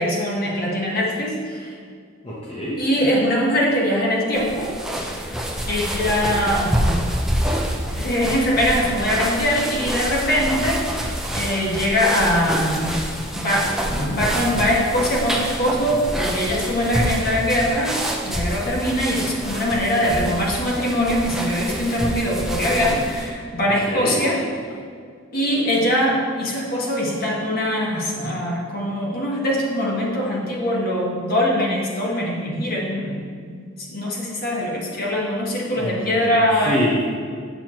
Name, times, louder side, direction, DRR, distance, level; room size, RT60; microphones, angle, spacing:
voice 1, 0.0-1.7 2.8-4.7 5.7-6.8 7.9-12.9 13.3-24.4 25.3-36.8, equal, 50° left, -3 dB, 1.4 m, -22 dB
voice 2, 2.2-2.8 23.9-24.2 35.8-37.0, equal, 30° left, -6 dB, 1.0 m, -26 dB
sound 1, 4.3-23.3, equal, ahead, 0.6 m, -27 dB
7.7 x 6.9 x 3.0 m, 2.1 s
head